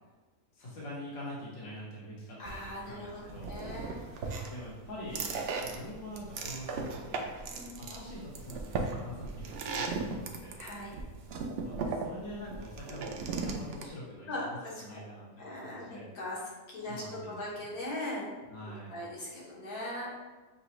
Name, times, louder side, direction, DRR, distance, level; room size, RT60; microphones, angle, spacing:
voice 1, 0.5-3.6 4.5-5.3 5.6-7.3 7.8-10.5 11.6-16.1 16.8-17.6 18.5-19.0, left 1 dB, 45° left, -6 dB, 1.4 m, -45 dB
voice 2, 2.4-4.5 7.5-7.7 10.6-11.0 14.3-15.0 15.4-16.4 16.7-18.3 18.9-20.2, left 1 dB, 85° left, -6 dB, 1.7 m, -40 dB
sound 1, 2.4-13.9, right 4 dB, 75° right, 0.5 m, -37 dB
6.9 x 2.3 x 3.0 m, 1.2 s
omnidirectional pair, 1.6 m